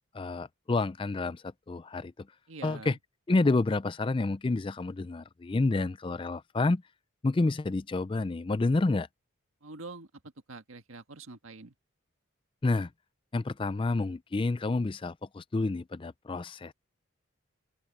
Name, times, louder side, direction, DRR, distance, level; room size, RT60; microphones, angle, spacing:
voice 1, 0.1-2.3 2.6-3.0 3.3-6.8 7.2-9.1 12.6-12.9 13.3-16.7, left 3 dB, 25° left, 0.4 m, -29 dB
voice 2, 2.5-3.0 9.6-11.7, right 3 dB, 80° right, 1.6 m, -45 dB
open air
head